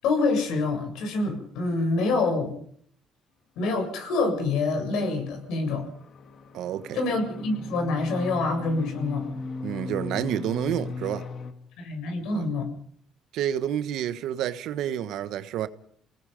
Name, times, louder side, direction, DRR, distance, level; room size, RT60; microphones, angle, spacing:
voice 1, 0.0-2.5 3.6-5.9 6.9-9.3 11.8-12.7, left 3 dB, 80° left, 7.7 m, -26 dB
sound 1, 4.5-11.5, left 3 dB, 50° left, 2.5 m, -38 dB
voice 2, 6.5-7.0 9.6-11.3 12.3-12.5 13.3-15.7, right 10 dB, 75° right, 1.3 m, -29 dB
29.0 x 19.0 x 5.3 m
cardioid pair, 115°, 0 cm